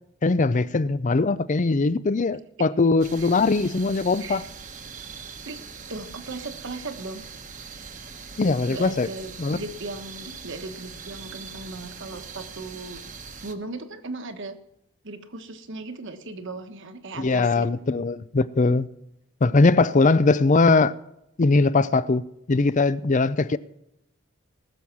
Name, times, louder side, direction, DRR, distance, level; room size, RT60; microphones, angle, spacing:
voice 1, 0.2-4.4 8.4-9.1 9.4-9.6 17.2-18.9 19.4-20.9 21.4-23.6, left 3 dB, 35° left, 0.5 m, -21 dB
sound 1, 3.0-13.5, right 5 dB, 35° right, 1.1 m, -41 dB
voice 2, 5.9-7.2 8.7-13.0 13.4-14.5 15.0-17.7, right 2 dB, 55° right, 1.3 m, -37 dB
20.0 x 7.1 x 6.1 m
head